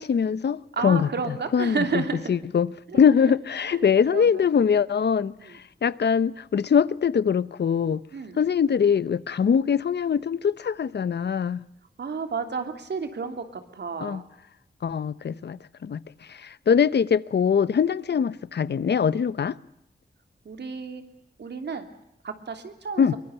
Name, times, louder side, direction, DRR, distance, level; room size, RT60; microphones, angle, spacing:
voice 1, 0.0-8.0 8.4-11.6 14.0-14.2 14.8-16.0 16.3-19.6 23.0-23.1, left 7 dB, 85° left, 0.9 m, -23 dB
voice 2, 0.8-2.3 2.9-3.0 3.6-3.8 4.1-4.3 5.4-5.6 8.1-8.4 12.0-14.3 20.4-21.0 21.4-21.9 22.2-23.1, right 5 dB, 90° right, 3.0 m, -31 dB
23.5 x 23.0 x 8.1 m
wide cardioid pair, 115°, 17 cm